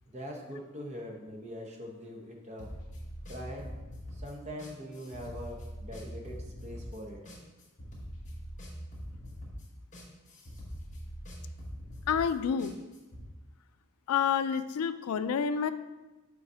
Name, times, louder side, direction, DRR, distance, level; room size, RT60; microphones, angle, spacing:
voice 1, 0.1-2.7 3.3-3.7 4.1-7.2, equal, 30° right, 0 dB, 0.9 m, -42 dB
sound 1, 2.6-13.2, equal, 35° left, 1.2 m, -43 dB
voice 2, 12.1-12.7 14.1-15.7, left 7 dB, 80° left, 12 dB, 0.3 m, -28 dB
5.4 x 4.0 x 5.5 m, 1.1 s
head